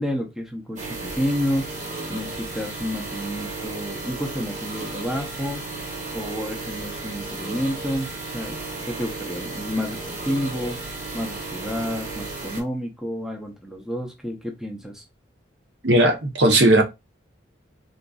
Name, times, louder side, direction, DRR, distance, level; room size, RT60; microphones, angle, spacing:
voice 1, 0.0-1.7 2.1-5.7 6.1-8.6 8.9-10.0 10.2-10.8 11.1-15.0, equal, ahead, 0.5 m, -30 dB
sound 1, 0.8-12.6, right 3 dB, 40° right, 1.0 m, -34 dB
voice 2, 15.8-16.8, right 1 dB, 65° right, 0.7 m, -17 dB
3.8 x 2.4 x 2.3 m
head